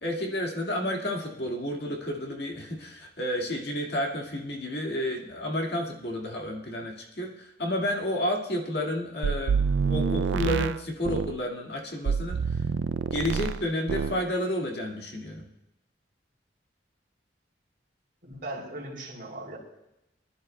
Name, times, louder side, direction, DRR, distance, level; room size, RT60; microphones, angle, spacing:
voice 1, 0.0-12.4 13.1-15.5, left 1 dB, 60° left, 0 dB, 2.0 m, -31 dB
sound 1, 9.2-11.4 12.1-13.6 13.9-14.2, right 6 dB, 85° right, 0.3 m, -27 dB
voice 2, 18.2-19.6, right 1 dB, 50° right, -2 dB, 3.1 m, -38 dB
26.5 x 11.0 x 2.2 m, 0.88 s
head